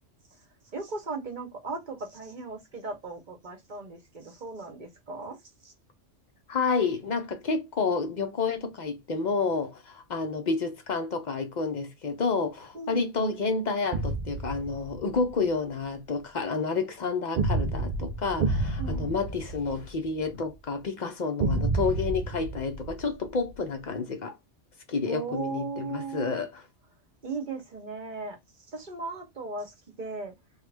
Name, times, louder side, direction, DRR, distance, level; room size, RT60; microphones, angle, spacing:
voice 1, 0.7-5.4 12.7-13.1 18.8-19.2 25.1-26.3 27.2-28.4 28.7-30.3, right 4 dB, 45° right, 0.9 m, -37 dB
voice 2, 6.5-24.4 24.9-26.6, left 4 dB, 50° left, 0.6 m, -30 dB
sound 1, 13.9-15.3 17.4-20.3 21.4-23.5, right 3 dB, 65° right, 0.4 m, -30 dB
3.0 x 2.4 x 3.3 m
omnidirectional pair, 1.2 m